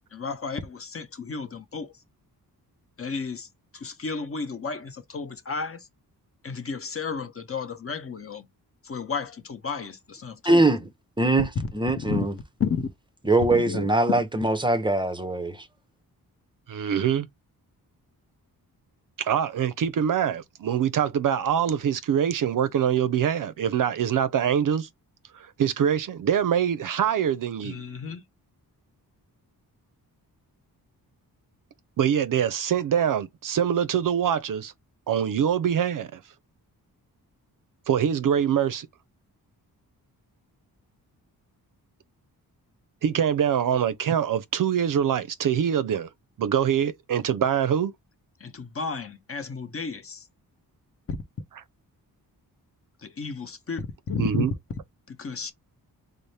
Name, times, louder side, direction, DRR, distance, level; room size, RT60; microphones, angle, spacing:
voice 1, 0.1-1.9 3.0-3.5 3.7-5.9 6.4-8.5 8.8-10.7 12.0-12.2 12.6-12.9 13.5-13.9 27.6-28.2 48.4-50.3 51.1-51.2 53.0-54.4 55.1-55.5, left 5 dB, 35° left, 0.7 m, -32 dB
voice 2, 10.4-10.8 11.2-11.5 11.7-12.3 13.2-15.6, right 2 dB, 15° right, 0.6 m, -22 dB
voice 3, 16.7-17.3 19.2-24.9 25.3-27.8 32.0-34.7 35.1-36.2 37.9-38.9 43.0-46.1 46.4-47.9 54.2-54.5, right 9 dB, 60° right, 0.5 m, -24 dB
4.0 x 2.0 x 3.2 m
wide cardioid pair, 110°, 38 cm